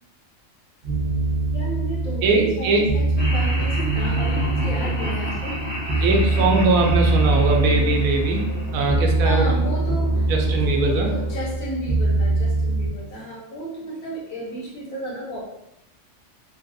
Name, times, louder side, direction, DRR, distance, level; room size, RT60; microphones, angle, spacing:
sound 1, 0.8-12.9, right 2 dB, 55° right, 0.9 m, -23 dB
voice 1, 1.5-5.6 5.9-6.1 9.2-10.3 10.6-15.4, right 1 dB, 75° left, -4 dB, 1.3 m, -33 dB
voice 2, 2.2-2.9 6.0-8.5 8.7-9.6 9.9-10.0 10.3-11.2, right 3 dB, 80° right, 1 dB, 1.0 m, -21 dB
Laughter, 3.2-9.3, left 1 dB, 10° left, 1.1 m, -32 dB
sound 2, 6.2-11.5, left 2 dB, 55° left, 1.1 m, -38 dB
3.1 x 2.3 x 2.6 m, 0.83 s
omnidirectional pair, 1.5 m